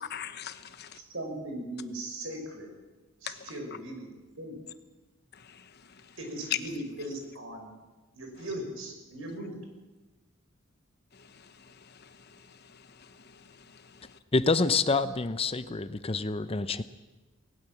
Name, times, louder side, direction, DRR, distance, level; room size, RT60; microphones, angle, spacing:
voice 1, 0.0-1.0 3.2-3.5 5.3-6.2 6.5-6.6 11.1-14.2, left 10 dB, 50° left, 11 dB, 1.1 m, -41 dB
voice 2, 1.0-2.7 3.2-4.1 4.4-4.6 6.2-7.7 8.1-9.6, right 1 dB, 70° right, 3 dB, 5.4 m, -38 dB
voice 3, 14.3-16.8, left 3 dB, 25° left, 13 dB, 0.6 m, -27 dB
19.0 x 18.5 x 7.4 m, 1.2 s
head